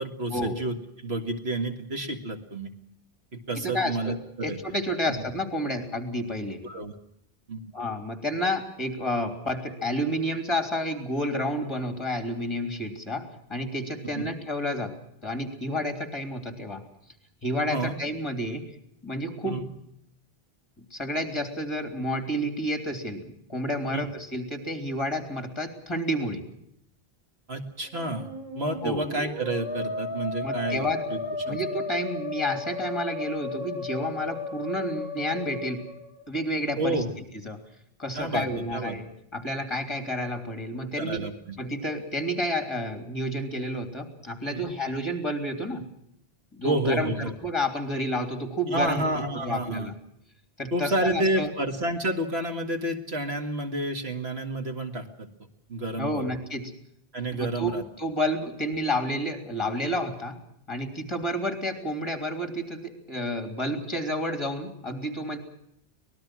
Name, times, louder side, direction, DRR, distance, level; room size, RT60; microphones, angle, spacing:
voice 1, 0.0-2.7 3.3-4.6 6.6-6.9 7.5-7.6 14.1-14.3 17.7-17.9 19.5-19.6 23.9-24.1 27.5-28.3 28.5-30.8 31.1-31.2 31.5-31.6 36.8-37.1 38.1-39.0 41.0-41.6 44.5-44.7 46.6-47.3 48.7-49.9 50.7-55.3 55.7-56.3 57.1-57.8, right 1 dB, 85° right, 5 dB, 2.3 m, -30 dB
voice 2, 3.5-4.1 4.4-6.6 7.7-14.9 15.2-16.8 17.4-18.6 19.0-19.6 20.9-26.4 28.8-29.0 30.4-31.0 31.5-35.8 36.3-37.0 37.4-37.6 38.0-41.3 41.6-45.8 46.5-49.0 49.3-49.9 50.6-51.5 56.0-56.7 57.4-60.4 60.7-65.4, equal, 25° left, 7 dB, 3.3 m, -30 dB
Musical instrument, 27.8-36.6, left 3 dB, 45° right, 5.6 m, -34 dB
24.5 x 19.5 x 6.2 m, 0.74 s
omnidirectional pair, 1.0 m